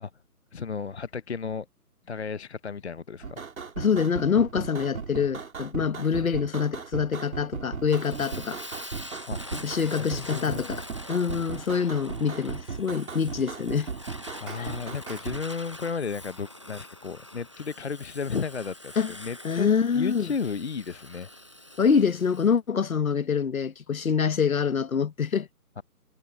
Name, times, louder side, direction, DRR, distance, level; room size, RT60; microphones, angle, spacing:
voice 1, 0.5-1.7 2.1-3.4 9.3-9.4 10.1-10.6 14.4-19.7 19.9-21.3 25.8-25.9, left 5 dB, 45° left, 0.8 m, -33 dB
sound 1, 3.2-15.4, right 5 dB, 60° right, 4.4 m, -37 dB
voice 2, 3.8-8.6 9.5-13.9 14.6-14.7 19.0-19.1 19.4-20.3 21.8-25.5, left 6 dB, 60° left, 1.5 m, -25 dB
Fire, 7.9-22.5, left 1 dB, 20° right, 0.7 m, -44 dB
hypercardioid pair, 165°, 47 cm